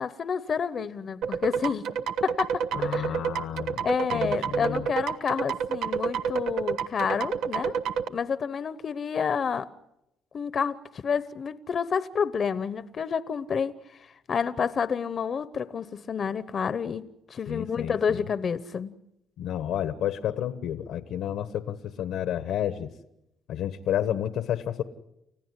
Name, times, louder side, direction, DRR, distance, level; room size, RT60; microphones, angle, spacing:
voice 1, 0.0-1.9 2.2-3.1 3.8-7.8 8.1-9.7 10.3-13.7 14.3-18.9, left 6 dB, 50° left, 15 dB, 0.9 m, -29 dB
sound 1, 1.2-8.1, right 7 dB, 90° right, 1.0 m, -29 dB
voice 2, 2.7-4.9 17.5-18.3 19.4-22.9 23.5-24.8, left 10 dB, 85° left, 12 dB, 1.3 m, -31 dB
30.0 x 15.5 x 9.8 m, 0.87 s
cardioid pair, 90°, 0 cm